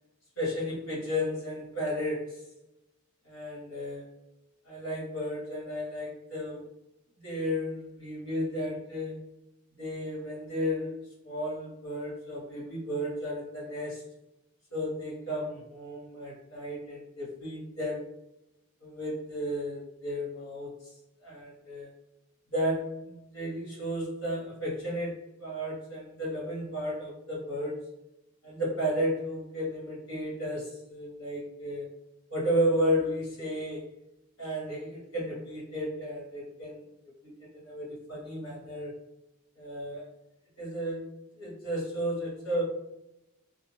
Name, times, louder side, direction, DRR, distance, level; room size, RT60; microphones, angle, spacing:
voice 1, 0.4-2.4 3.2-4.0 4.6-6.6 7.2-9.3 9.8-14.0 14.7-18.1 18.8-20.9 21.2-21.9 22.5-27.8 28.4-31.9 32.3-33.9 34.4-36.8 37.2-38.9 39.6-40.0 40.6-41.1 41.4-42.6, equal, 65° left, -5 dB, 1.4 m, -33 dB
2.7 x 2.0 x 3.2 m, 0.90 s
head